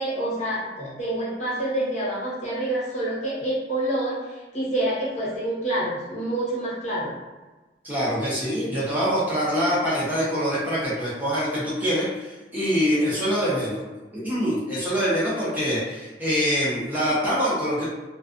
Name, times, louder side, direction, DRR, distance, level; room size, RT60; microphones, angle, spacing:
voice 1, 0.0-4.2 4.5-7.1, right 1 dB, 40° left, -8 dB, 0.9 m, -27 dB
voice 2, 7.8-13.8 14.1-17.9, equal, 10° right, -9 dB, 0.6 m, -24 dB
2.3 x 2.3 x 2.4 m, 1.2 s
head